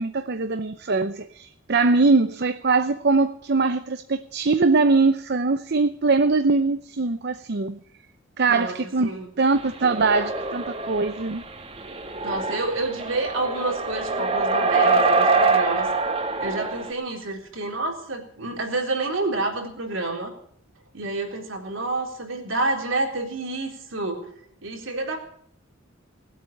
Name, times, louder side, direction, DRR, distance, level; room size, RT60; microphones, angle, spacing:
voice 1, 0.0-7.8 8.4-11.5, right 3 dB, 55° right, 0.7 m, -22 dB
voice 2, 8.5-9.3 12.2-15.9 16.4-20.3 20.9-24.2 24.6-25.2, right 2 dB, 70° right, 3.9 m, -29 dB
sound 1, 9.8-11.3 11.8-16.9, right 3 dB, 30° right, 1.5 m, -24 dB
19.5 x 8.3 x 8.6 m
head